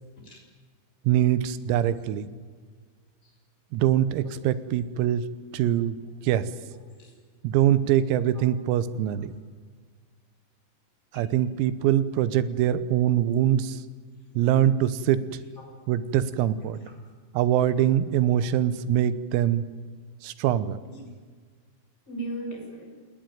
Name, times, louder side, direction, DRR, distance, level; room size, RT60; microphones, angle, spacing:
voice 1, 1.1-2.3 3.7-5.2 5.5-6.0 6.2-6.4 7.4-9.3 11.2-13.8 14.4-15.2 15.9-16.8 17.4-19.6 20.2-20.8, right 11 dB, 90° right, 14 dB, 3.8 m, -23 dB
voice 2, 6.7-7.1 8.3-8.4 11.1-11.3 15.5-15.6 16.7-17.0 20.8-21.1 22.0-22.9, right 2 dB, 15° left, 0 dB, 6.8 m, -39 dB
28.5 x 20.0 x 9.3 m, 1.5 s
omnidirectional pair, 6.0 m